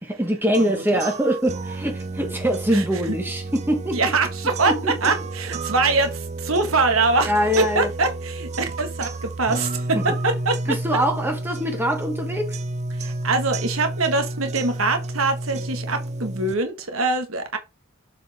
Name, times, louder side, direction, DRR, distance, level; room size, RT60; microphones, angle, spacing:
voice 1, 0.0-4.1 4.7-5.1 7.2-7.9 9.9-10.0 10.7-12.6, equal, 10° right, 1.2 m, -23 dB
sound 1, 0.5-16.5, right 2 dB, 30° right, 0.6 m, -31 dB
voice 2, 0.6-1.0 2.7-3.2 3.9-10.6 13.0-17.6, right 3 dB, 65° right, 1.5 m, -23 dB
7.3 x 4.6 x 3.4 m
head